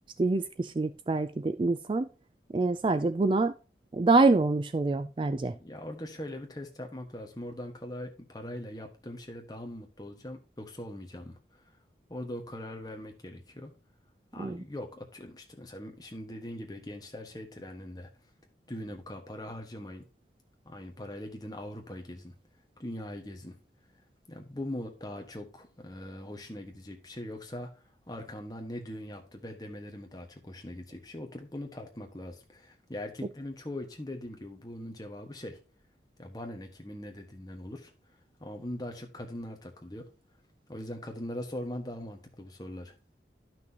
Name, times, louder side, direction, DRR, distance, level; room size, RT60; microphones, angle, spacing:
voice 1, 0.2-2.1 2.5-3.6 3.9-5.5 14.4-14.6, right 3 dB, 30° right, 0.3 m, -26 dB
voice 2, 5.6-11.6 12.1-13.7 14.3-18.1 18.7-20.1 20.6-22.3 22.8-23.6 24.3-35.6 36.2-37.9 38.4-40.1 40.7-42.9, left 1 dB, 20° left, 1.4 m, -41 dB
11.5 x 6.0 x 2.9 m
head